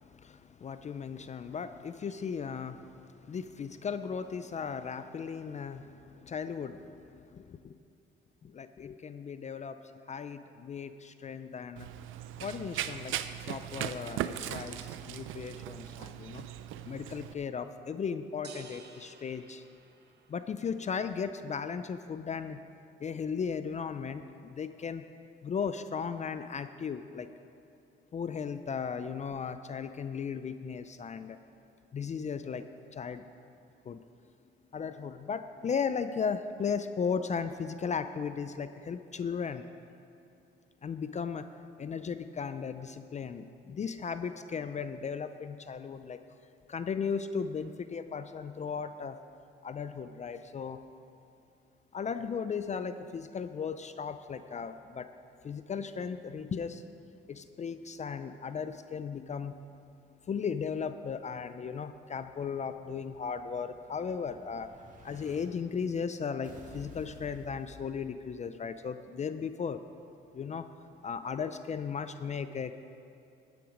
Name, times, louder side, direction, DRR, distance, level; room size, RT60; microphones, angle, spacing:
voice 1, 0.0-7.0 7.3-7.8 8.4-9.8 10.1-11.9 12.4-13.2 13.5-16.4 16.8-19.6 20.3-22.6 23.0-25.0 25.4-27.3 28.1-31.4 31.9-32.6 32.9-33.2 33.9-34.0 34.7-39.7 40.8-41.5 41.8-46.2 46.7-49.2 49.6-50.8 51.9-55.1 55.4-56.8 57.3-59.6 60.3-64.7 65.0-69.8 70.3-70.7 71.0-72.7, left 6 dB, 35° left, 11 dB, 0.4 m, -36 dB
Run, 11.8-17.3, right 11 dB, 90° right, 0.5 m, -38 dB
sound 1, 18.4-20.5, right 3 dB, 55° right, 1.2 m, -50 dB
Explosion, 62.1-65.4 66.4-68.5, right 1 dB, 40° right, 2.0 m, -53 dB
13.0 x 9.2 x 5.1 m, 2.6 s
cardioid pair, 90°, 20 cm